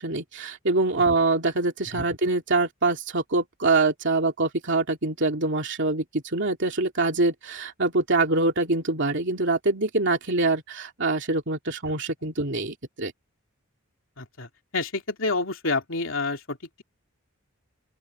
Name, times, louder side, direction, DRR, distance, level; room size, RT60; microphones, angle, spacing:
voice 1, 0.0-13.1, right 3 dB, 60° right, 2.9 m, -24 dB
voice 2, 14.2-16.8, left 3 dB, 65° left, 3.4 m, -29 dB
open air
head